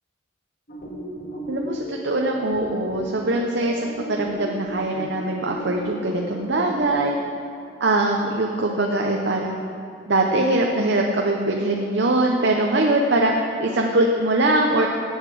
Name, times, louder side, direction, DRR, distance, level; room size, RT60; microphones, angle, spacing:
sound 1, 0.7-6.9, left 1 dB, 50° left, 1.9 m, -35 dB
voice 1, 1.5-3.8 4.1-7.2 7.8-9.6 10.1-13.3 13.6-14.9, right 2 dB, 60° right, 1 dB, 0.7 m, -22 dB
8.1 x 8.0 x 7.6 m, 2.6 s
head